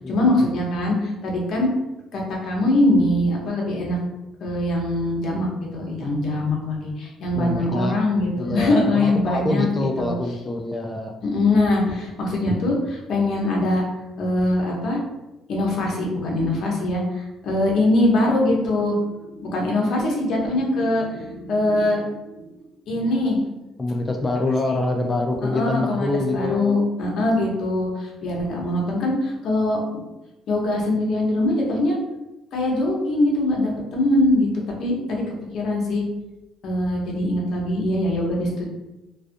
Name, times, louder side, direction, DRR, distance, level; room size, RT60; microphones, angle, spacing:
voice 1, 0.1-1.7 2.1-4.0 4.4-10.1 11.2-13.8 14.2-15.0 15.5-22.4 22.9-23.4 25.4-29.8 30.5-32.0 32.5-34.5 34.8-35.2 35.5-36.0 36.6-38.7, left 1 dB, 60° left, -2 dB, 0.7 m, -22 dB
voice 2, 7.4-8.0 8.3-11.2 23.8-26.8, left 2 dB, 25° left, 3 dB, 0.3 m, -25 dB
2.4 x 2.3 x 2.5 m, 0.99 s
cardioid pair, 95°, 0 cm